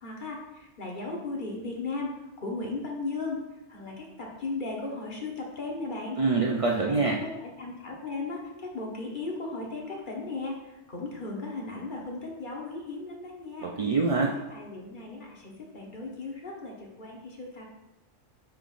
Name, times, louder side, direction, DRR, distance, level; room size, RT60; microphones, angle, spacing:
voice 1, 0.0-2.1 2.4-3.4 3.7-6.2 6.9-13.7 14.2-17.6, left 3 dB, 45° left, -2 dB, 1.3 m, -36 dB
voice 2, 6.2-7.2 13.6-14.3, right 3 dB, 50° right, -1 dB, 0.4 m, -25 dB
6.6 x 5.8 x 2.5 m, 0.99 s
omnidirectional pair, 1.2 m